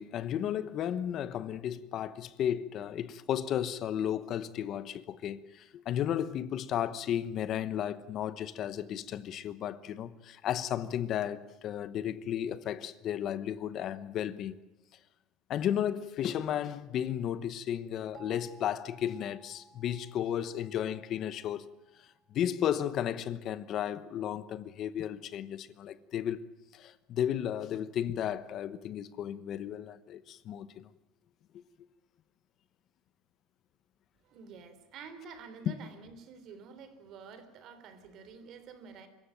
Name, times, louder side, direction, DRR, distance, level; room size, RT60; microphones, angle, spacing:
voice 1, 0.0-14.6 15.5-21.7 22.0-26.4 26.7-30.9, left 10 dB, 45° left, 1.0 m, -34 dB
sound 1, 18.1-22.9, right 3 dB, 30° right, 5.0 m, -58 dB
voice 2, 34.2-39.1, right 5 dB, 50° right, 3.5 m, -49 dB
25.0 x 15.0 x 9.1 m
cardioid pair, 130°, 0 cm